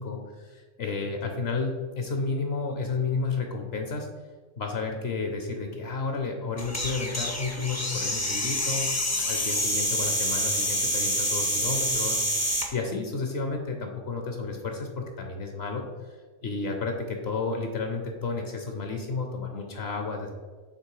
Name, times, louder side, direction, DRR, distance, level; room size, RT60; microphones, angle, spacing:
voice 1, 0.0-4.1 4.6-8.9 9.3-15.8 16.4-20.3, left 4 dB, 60° left, 3 dB, 0.9 m, -32 dB
sound 1, 6.6-12.7, equal, 20° left, 0.4 m, -27 dB
6.7 x 3.0 x 4.7 m, 1.4 s
omnidirectional pair, 1.3 m